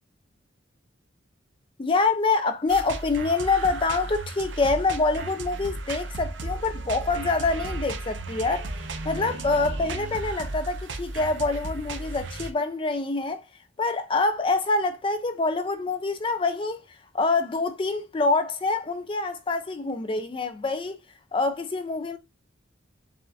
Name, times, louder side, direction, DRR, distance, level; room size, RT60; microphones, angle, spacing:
voice 1, 1.8-8.7 9.0-13.5 13.8-21.0 21.3-22.2, left 3 dB, 25° left, 0.4 m, -26 dB
sound 1, 2.7-12.5, right 2 dB, 65° right, 0.6 m, -34 dB
7.4 x 2.5 x 2.3 m
head